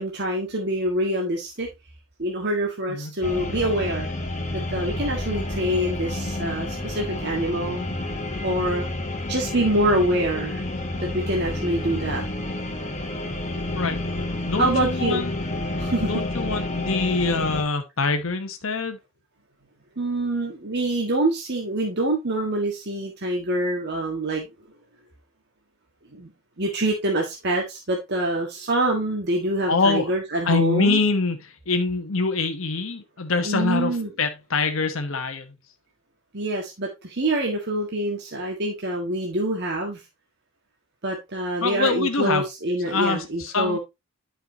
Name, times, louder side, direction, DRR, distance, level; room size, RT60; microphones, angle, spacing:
voice 1, 0.0-1.7 2.2-4.1 4.5-7.8 8.4-8.8 9.3-10.6 11.0-12.2 14.6-15.2 15.8-16.1 20.0-24.5 26.1-26.3 26.6-31.0 33.4-34.1 36.3-40.0 41.0-43.8, right 1 dB, 55° right, 1.6 m, -25 dB
sound 1, 3.2-17.6, left 2 dB, 35° left, 1.6 m, -30 dB
voice 2, 14.4-15.3 16.0-19.0 29.7-30.0 30.5-31.4 31.7-33.9 34.2-35.5 41.6-42.4 42.9-43.8, left 4 dB, 65° left, 1.0 m, -24 dB
9.6 x 5.8 x 2.8 m
head